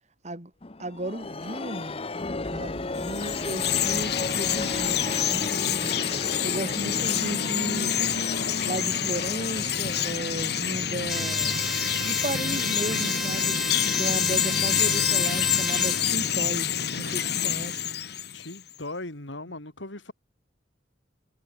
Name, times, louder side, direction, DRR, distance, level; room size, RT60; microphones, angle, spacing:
sound 1, 0.6-12.1, left 3 dB, 30° left, 0.9 m, -35 dB
voice 1, 0.8-2.0 2.5-6.0 6.4-7.9 8.6-11.6 12.0-13.6 14.0-16.7 17.0-17.8, right 1 dB, 40° right, 3.6 m, -34 dB
Chirp tweet, 3.0-18.6, left 9 dB, 60° left, 3.4 m, -27 dB
sound 2, 11.1-16.2, equal, ahead, 0.7 m, -32 dB
voice 2, 18.3-20.1, left 2 dB, 85° left, 4.3 m, -38 dB
head